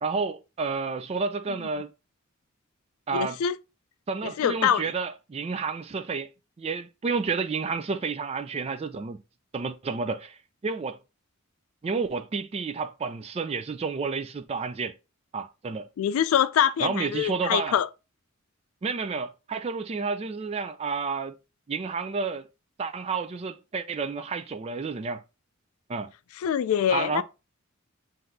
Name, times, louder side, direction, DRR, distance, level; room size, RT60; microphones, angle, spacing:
voice 1, 0.0-1.9 3.1-3.4 4.1-6.3 6.6-9.2 9.5-11.0 11.8-14.9 15.3-15.9 16.8-17.8 18.8-21.4 21.7-22.5 22.8-25.2 25.9-26.1 26.9-27.2, right 4 dB, 30° right, 0.3 m, -30 dB
voice 2, 3.1-3.5 4.2-4.8 16.0-17.9 26.4-27.2, left 9 dB, 80° left, 0.3 m, -24 dB
7.7 x 2.6 x 2.6 m
head